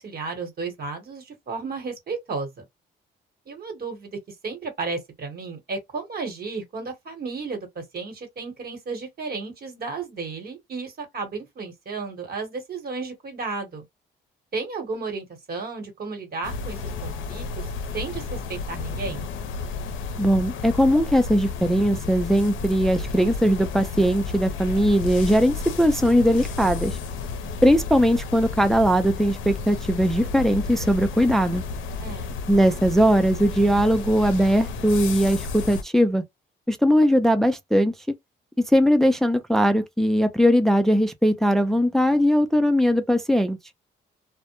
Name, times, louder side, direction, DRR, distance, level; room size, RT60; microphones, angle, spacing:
voice 1, 0.0-2.6 3.5-13.8 14.5-19.3 32.0-32.3, right 4 dB, 50° right, 1.1 m, -33 dB
sound 1, 16.4-35.8, left 4 dB, 80° left, 0.5 m, -32 dB
voice 2, 20.2-27.0 27.6-31.6 32.5-36.2 36.7-37.9 38.6-43.6, equal, ahead, 0.4 m, -20 dB
2.1 x 2.1 x 2.9 m
cardioid pair, 90°, 20 cm